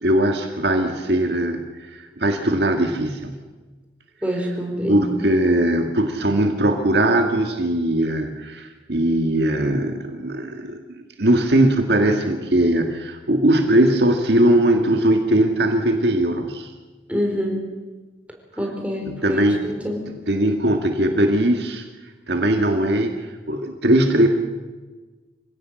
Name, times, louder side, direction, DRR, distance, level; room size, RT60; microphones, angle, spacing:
voice 1, 0.0-3.4 4.9-10.8 11.2-16.7 19.0-19.6 20.3-21.8 22.3-24.3, right 1 dB, 65° right, 4 dB, 1.9 m, -20 dB
voice 2, 4.2-5.1 17.1-17.6 18.6-20.0, equal, 10° right, 1 dB, 4.5 m, -26 dB
26.5 x 17.0 x 7.7 m, 1.3 s
head